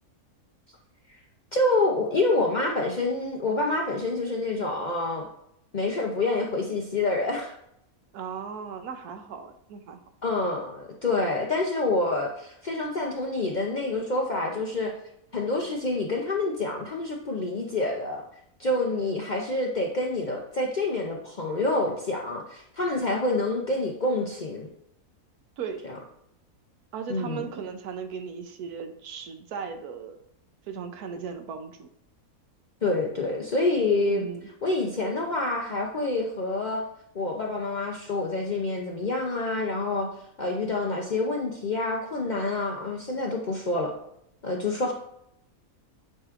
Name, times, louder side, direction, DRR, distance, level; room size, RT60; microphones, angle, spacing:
voice 1, 1.5-5.3 5.7-7.5 10.2-14.9 15.3-18.2 18.6-24.7 25.9-26.0 27.1-27.4 32.8-34.2 34.6-36.8 37.1-40.1 40.4-43.9 44.4-44.9, left 2 dB, 50° left, 0 dB, 0.5 m, -27 dB
voice 2, 8.1-10.0 25.6-25.9 26.9-30.2 30.7-31.9 34.1-34.5, right 6 dB, 85° right, 7 dB, 1.2 m, -37 dB
8.9 x 4.7 x 2.5 m, 0.76 s
omnidirectional pair, 1.5 m